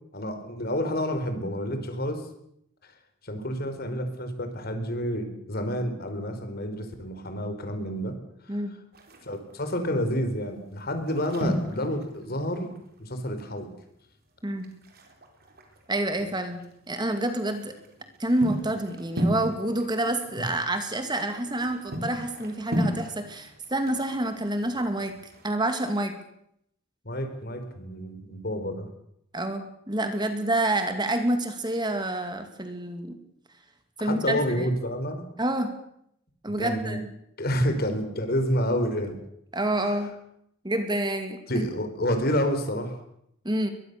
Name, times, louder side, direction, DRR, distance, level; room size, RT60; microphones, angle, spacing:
voice 1, 0.1-2.2 2.8-2.9 3.2-8.1 8.5-8.6 9.2-12.7 13.0-13.7 20.4-20.5 27.0-28.9 34.0-35.3 36.5-37.0 37.4-39.2 39.8-40.0 41.5-43.0, equal, 50° left, 7 dB, 4.2 m, -29 dB
sound 1, 8.9-9.5 10.2-10.4 10.7-13.4 13.7-13.8 14.1-14.2 14.6-16.7 17.2-25.5, equal, 50° right, 4.3 m, -34 dB
voice 2, 15.9-16.6 16.9-17.8 18.2-25.1 25.4-26.1 29.3-33.2 34.0-34.7 35.4-35.7 36.4-37.1 39.5-40.1 40.6-41.7 43.4-43.7, right 1 dB, 20° right, 7 dB, 2.4 m, -28 dB
22.5 x 22.0 x 6.9 m, 0.74 s
head